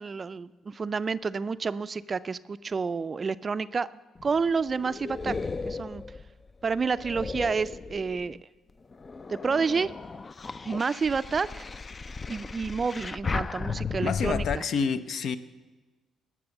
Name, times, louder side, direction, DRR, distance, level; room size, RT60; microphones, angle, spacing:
voice 1, 0.0-3.9 4.2-5.3 5.7-6.0 6.6-8.4 9.3-9.9 10.7-11.7 12.3-14.6, right 5 dB, 35° right, 15 dB, 0.4 m, -29 dB
sound 1, 4.2-8.4 8.9-14.6, left 4 dB, 30° left, 0.4 m, -35 dB
voice 2, 14.0-15.4, left 6 dB, 65° left, 12 dB, 0.6 m, -28 dB
18.0 x 6.1 x 7.0 m, 1.3 s
cardioid pair, 90°, 0 cm